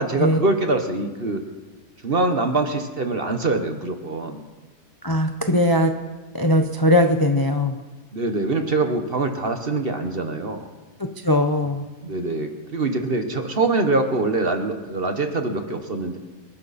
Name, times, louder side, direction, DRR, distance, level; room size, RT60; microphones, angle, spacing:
voice 1, 0.0-1.4 2.0-4.4 8.1-10.7 12.0-16.2, right 3 dB, 35° right, 6 dB, 1.2 m, -24 dB
voice 2, 5.0-5.9 6.3-7.8 11.0-11.8, left 1 dB, 25° left, 5 dB, 0.5 m, -20 dB
27.0 x 11.5 x 4.2 m, 1.3 s
omnidirectional pair, 1.9 m